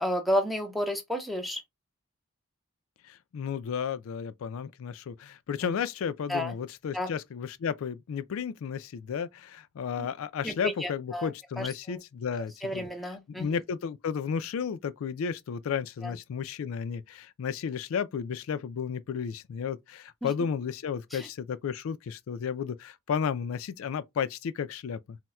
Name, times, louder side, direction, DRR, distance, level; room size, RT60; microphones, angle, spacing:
voice 1, 0.0-1.6 6.3-6.6 6.9-7.1 10.0-10.1 10.4-11.3 11.6-12.0 12.6-13.6 16.0-16.2 20.2-20.3 21.1-21.3, equal, ahead, 0.5 m, -31 dB
voice 2, 3.0-12.9 13.3-25.2, left 7 dB, 75° left, 0.3 m, -33 dB
4.1 x 2.1 x 2.3 m
head